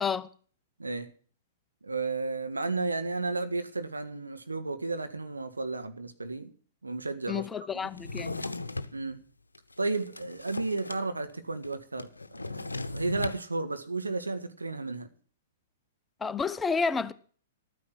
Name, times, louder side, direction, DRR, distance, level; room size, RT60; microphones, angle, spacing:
voice 1, 1.8-6.5 6.8-7.7 8.9-9.2 9.8-12.1 12.4-15.1, right 3 dB, 85° right, 1.6 m, -33 dB
voice 2, 7.3-8.6 16.2-17.1, left 5 dB, 15° left, 0.8 m, -30 dB
Drawer open or close, 7.9-9.0 9.5-11.0 11.3-11.4 11.6-13.4, left 3 dB, 85° left, 0.8 m, -37 dB
13.5 x 9.4 x 6.1 m
figure-of-eight pair, 110°, 0 cm